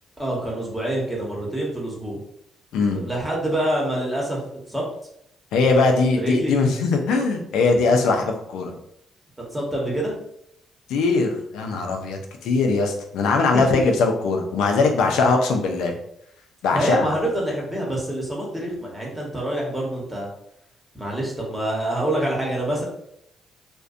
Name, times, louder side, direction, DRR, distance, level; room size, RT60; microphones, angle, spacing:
voice 1, 0.2-2.2 2.9-4.4 4.7-4.8 6.2-6.5 9.5-10.1 13.5-13.8 16.7-20.3 20.9-22.8, right 1 dB, 10° right, -3 dB, 0.9 m, -26 dB
voice 2, 5.5-8.7 10.9-15.9 16.6-17.1, left 3 dB, 90° left, 3 dB, 0.4 m, -21 dB
2.5 x 2.1 x 2.4 m, 0.73 s
cardioid pair, 90°, 0 cm